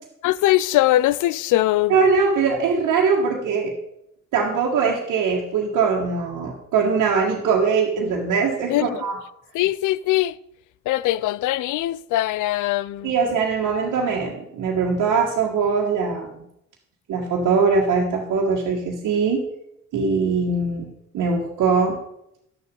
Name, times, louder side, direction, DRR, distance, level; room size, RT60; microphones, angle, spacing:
voice 1, 0.2-2.0 8.7-9.0 9.5-10.4 10.9-13.1, left 15 dB, 75° left, 0.5 m, -21 dB
voice 2, 1.9-3.7 4.3-9.2 13.0-16.4 17.1-19.4 19.9-20.9 21.1-22.0, right 5 dB, 75° right, 1.7 m, -21 dB
11.0 x 7.0 x 5.3 m
supercardioid pair, 55°, 31 cm